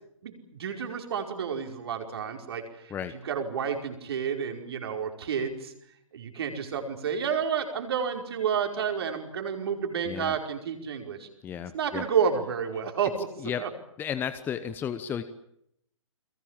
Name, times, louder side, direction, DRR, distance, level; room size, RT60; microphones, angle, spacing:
voice 1, 0.2-2.9 3.2-5.7 6.1-11.3 11.7-13.3 13.6-13.7, right 7 dB, 50° right, 4 dB, 5.2 m, -30 dB
voice 2, 11.4-12.0 13.4-13.6 14.0-15.2, left 8 dB, 10° left, 12 dB, 1.0 m, -33 dB
30.0 x 22.0 x 7.5 m, 0.74 s
figure-of-eight pair, 130°, 17 cm